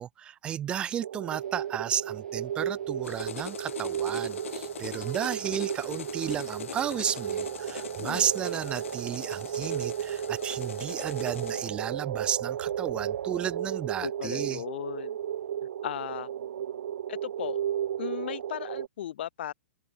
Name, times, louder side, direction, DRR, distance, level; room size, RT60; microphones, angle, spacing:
voice 1, 0.0-14.6, right 10 dB, 15° right, 0.5 m, -33 dB
sound 1, 1.0-18.9, right 10 dB, 70° right, 0.4 m, -34 dB
sound 2, 1.3-13.5, left 7 dB, 10° left, 2.9 m, -62 dB
sound 3, 3.0-11.7, left 8 dB, 80° left, 0.5 m, -41 dB
voice 2, 14.0-15.2 15.8-16.3 17.1-17.6 18.0-19.5, left 11 dB, 55° left, 2.4 m, -36 dB
open air
hypercardioid pair, 160°, 7 cm